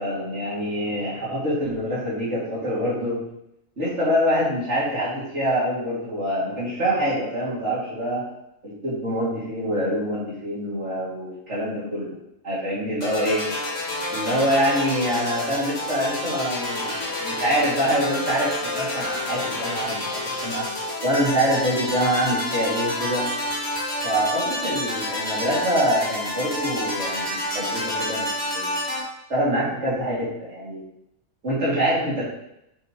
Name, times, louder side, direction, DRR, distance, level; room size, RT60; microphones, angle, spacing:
voice 1, 0.0-3.2 3.8-8.2 8.6-12.1 12.4-13.4 14.1-20.7 21.0-23.3 24.0-28.7 29.3-30.8 31.4-32.2, equal, 55° right, -7 dB, 3.1 m, -25 dB
sound 1, 13.0-29.0, left 1 dB, 60° left, 2.0 m, -29 dB
7.0 x 6.7 x 3.2 m, 0.82 s
omnidirectional pair, 1.5 m